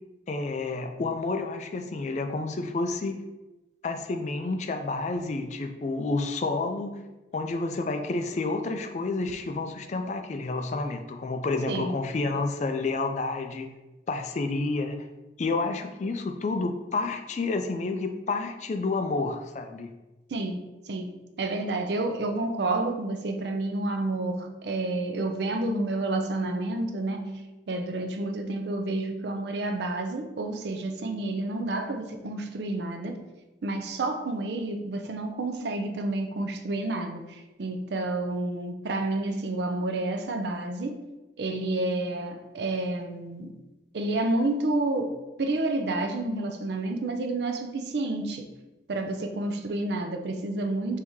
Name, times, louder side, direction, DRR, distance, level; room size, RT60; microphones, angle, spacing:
voice 1, 0.3-3.2 3.8-7.0 7.3-13.7 14.1-15.1 15.4-19.9, left 3 dB, 40° left, 0.3 m, -30 dB
voice 2, 20.3-33.3 33.6-41.1 41.4-43.6 43.9-48.5 48.9-51.0, right 2 dB, 65° right, 0.5 m, -30 dB
3.5 x 2.8 x 4.6 m
head